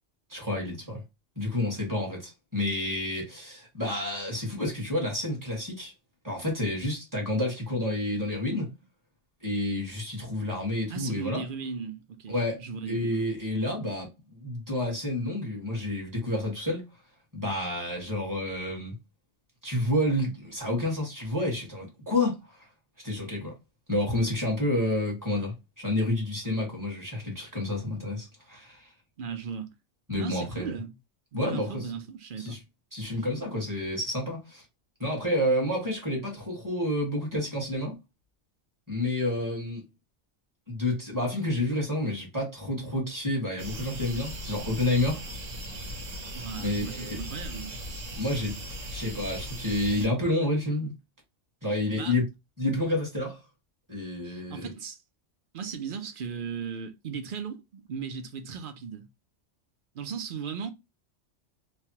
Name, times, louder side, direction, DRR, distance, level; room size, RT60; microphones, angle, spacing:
voice 1, 0.3-1.0 1.3-5.9 6.2-8.7 9.4-11.4 12.3-16.8 17.3-18.9 19.6-22.7 23.0-23.5 23.9-28.9 30.1-30.7 31.3-31.9 32.4-32.6 32.9-34.6 35.0-38.0 38.9-39.8 40.7-45.2 46.6-47.2 48.2-48.6 48.9-50.9 51.6-52.2 52.6-53.4 53.9-54.7, left 1 dB, 15° right, 1.4 m, -29 dB
voice 2, 10.9-13.1 29.2-29.7 30.2-30.9 31.3-32.6 46.3-47.8 51.9-52.1 54.2-55.0 55.5-59.1 59.9-60.7, right 6 dB, 55° right, 0.6 m, -37 dB
sound 1, 43.6-50.1, equal, 80° right, 1.2 m, -38 dB
3.2 x 2.3 x 2.8 m
omnidirectional pair, 1.3 m